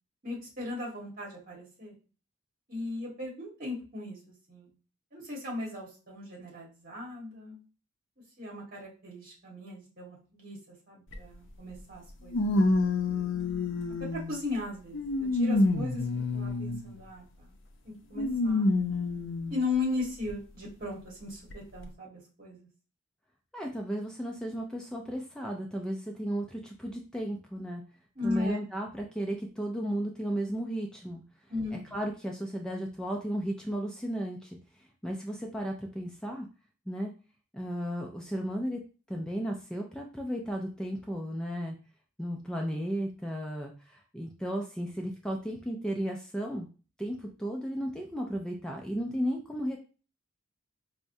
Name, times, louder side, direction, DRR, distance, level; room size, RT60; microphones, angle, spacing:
voice 1, 0.2-1.9 2.7-4.7 5.1-7.6 8.4-12.5 13.0-16.0 16.3-17.5 17.8-18.7 19.5-22.7 28.1-28.6 31.5-32.0, left 3 dB, 40° right, -3 dB, 1.5 m, -37 dB
sound 1, 11.1-11.2 12.3-14.4 14.9-17.0 18.2-19.6 20.3-20.4 21.5-21.6, left 2 dB, 60° left, 0.5 m, -28 dB
voice 2, 23.5-27.8 28.2-31.2 31.7-34.6 35.0-36.5 36.9-37.1 37.5-38.8 39.1-41.8 42.2-46.7 47.0-49.8, equal, 5° left, 1 dB, 0.3 m, -34 dB
4.7 x 2.1 x 2.6 m, 0.35 s
head